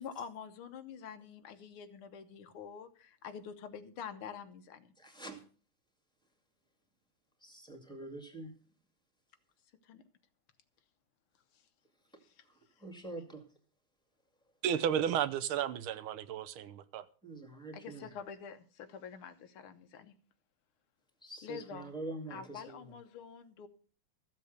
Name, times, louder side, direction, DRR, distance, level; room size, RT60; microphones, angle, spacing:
voice 1, 0.0-4.9 9.8-10.0 11.5-11.6 12.2-12.5 17.7-20.1 21.4-21.9 22.3-23.7, left 7 dB, 85° left, 1.9 m, -47 dB
voice 2, 5.0-5.4 7.4-8.5 12.5-13.4 17.2-18.0 21.2-22.8, right 2 dB, ahead, 2.0 m, -45 dB
voice 3, 14.6-17.0, right 9 dB, 80° right, 1.6 m, -33 dB
14.5 x 7.6 x 6.6 m
omnidirectional pair, 2.3 m